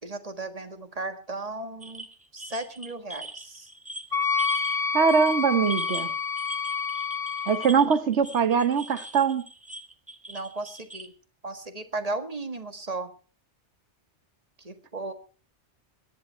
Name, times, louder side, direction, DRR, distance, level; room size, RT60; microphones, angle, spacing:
voice 1, 0.0-2.1 2.3-3.7 10.3-11.1 11.4-13.1 14.6-15.1, right 2 dB, 35° right, 1.7 m, -35 dB
sound 1, 1.8-4.8 5.0-5.4 5.7-11.1, right 1 dB, 5° right, 1.5 m, -41 dB
Wind instrument woodwind instrument, 4.1-7.7, left 5 dB, 20° left, 0.9 m, -28 dB
voice 2, 4.9-6.1 7.5-9.4, right 6 dB, 75° right, 1.5 m, -22 dB
22.0 x 11.0 x 4.5 m
omnidirectional pair, 1.2 m